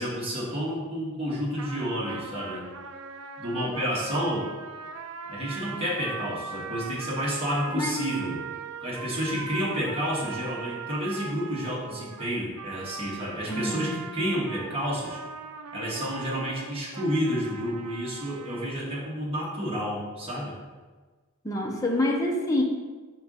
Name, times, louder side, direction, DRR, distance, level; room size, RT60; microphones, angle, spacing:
voice 1, 0.0-2.7 3.4-4.5 5.3-8.5 8.8-15.2 15.7-20.6, equal, 25° right, -5 dB, 1.5 m, -30 dB
sound 1, 1.6-18.7, right 5 dB, 80° right, 0.5 m, -40 dB
voice 2, 13.5-13.9 21.4-22.6, left 1 dB, 15° left, 0 dB, 0.7 m, -26 dB
4.5 x 3.8 x 5.5 m, 1.3 s
head